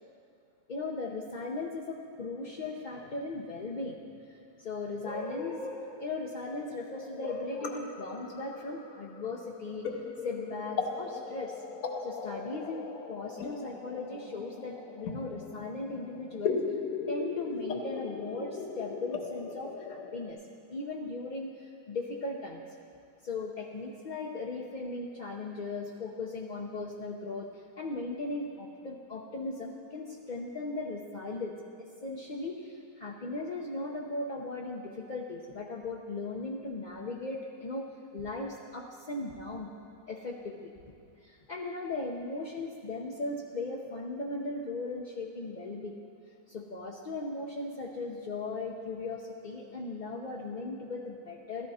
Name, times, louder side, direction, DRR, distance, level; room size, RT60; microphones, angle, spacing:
voice 1, 0.7-4.0 4.3-9.8 10.2-11.6 12.0-16.8 17.1-20.4 20.7-22.6 23.2-31.5 32.0-39.7 40.1-40.7 41.2-46.0 46.5-51.7, left 3 dB, 45° left, -2 dB, 0.6 m, -37 dB
sound 1, 6.5-20.3, left 5 dB, 65° left, 1.2 m, -38 dB
14.0 x 13.5 x 4.2 m, 2.3 s
omnidirectional pair, 1.7 m